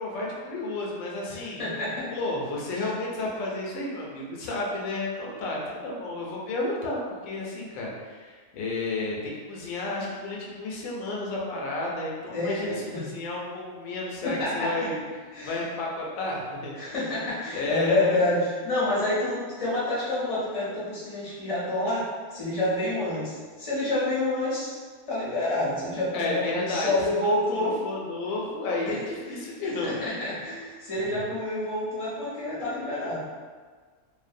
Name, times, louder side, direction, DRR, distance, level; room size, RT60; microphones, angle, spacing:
voice 1, 0.0-1.6 2.1-15.0 15.4-16.8 17.5-18.3 26.1-30.2 31.0-31.3, left 2 dB, 75° left, -3 dB, 1.0 m, -32 dB
voice 2, 1.3-2.1 2.7-2.8 12.3-13.1 14.2-14.9 15.3-15.6 16.8-24.7 25.1-27.8 28.8-28.9 29.8-33.3, left 1 dB, 40° left, -9 dB, 0.5 m, -28 dB
2.6 x 2.1 x 2.5 m, 1.5 s
omnidirectional pair, 1.5 m